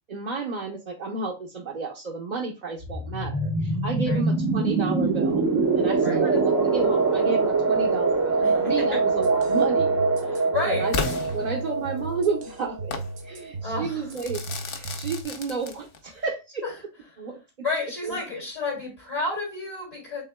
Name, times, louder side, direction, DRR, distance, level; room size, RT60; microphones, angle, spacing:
voice 1, 0.1-5.4 5.7-9.9 10.2-10.9 11.3-14.4 14.7-16.6 17.2-17.3 18.0-18.2, right 4 dB, 45° right, -1 dB, 0.7 m, -32 dB
sound 1, 2.8-13.3, right 4 dB, 90° right, 1.7 m, -24 dB
voice 2, 8.4-9.0 10.3-10.9 13.6-14.0 16.6-16.7 17.6-20.2, left 3 dB, 75° left, -4 dB, 2.7 m, -30 dB
sound 2, 9.2-15.2, right 3 dB, 65° right, 1.0 m, -37 dB
Crackle / Fireworks, 10.9-12.1 12.9-13.1 14.1-16.1, left 4 dB, 55° left, 0.8 m, -33 dB
5.7 x 3.4 x 2.2 m, 0.28 s
omnidirectional pair, 1.3 m